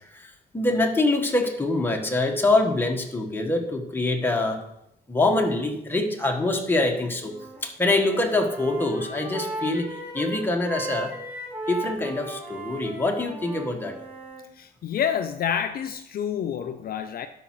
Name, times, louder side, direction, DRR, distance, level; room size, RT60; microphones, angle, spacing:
voice 1, 0.0-4.6 5.1-7.3 7.6-11.1 11.7-14.0, left 2 dB, 10° left, 2 dB, 1.2 m, -24 dB
Wind instrument woodwind instrument, 7.2-7.6 7.9-14.4, right 1 dB, 10° right, 2.4 m, -36 dB
voice 2, 14.6-17.3, left 8 dB, 60° left, 8 dB, 0.5 m, -28 dB
12.0 x 4.8 x 4.6 m, 0.82 s
cardioid pair, 130°, 18 cm